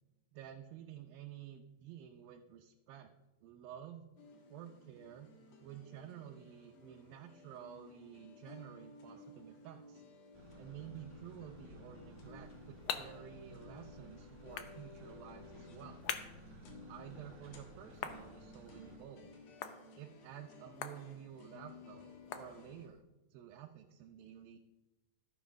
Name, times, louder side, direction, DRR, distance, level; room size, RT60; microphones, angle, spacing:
voice 1, 0.3-3.1 3.4-4.1 4.5-5.3 5.6-10.0 10.6-16.0 16.9-19.3 20.0-23.0 23.3-24.6, right 10 dB, 85° right, 3 dB, 2.6 m, -51 dB
sound 1, 4.2-22.9, left 3 dB, 55° left, 2.3 m, -57 dB
sound 2, 10.3-19.0, right 1 dB, 20° right, 2.5 m, -56 dB
sound 3, 12.2-23.0, left 9 dB, 85° left, 1.4 m, -48 dB
13.5 x 7.3 x 6.2 m, 1.0 s
omnidirectional pair, 4.1 m